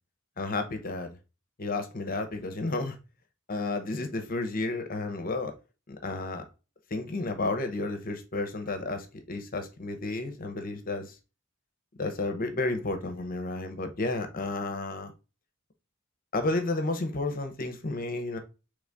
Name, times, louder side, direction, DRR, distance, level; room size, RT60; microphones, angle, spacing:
voice 1, 0.4-1.1 1.6-3.0 3.5-5.5 5.9-6.4 6.9-11.1 12.0-15.1 16.3-18.4, left 2 dB, 45° left, 7 dB, 0.8 m, -32 dB
3.9 x 3.3 x 3.4 m, 0.30 s
head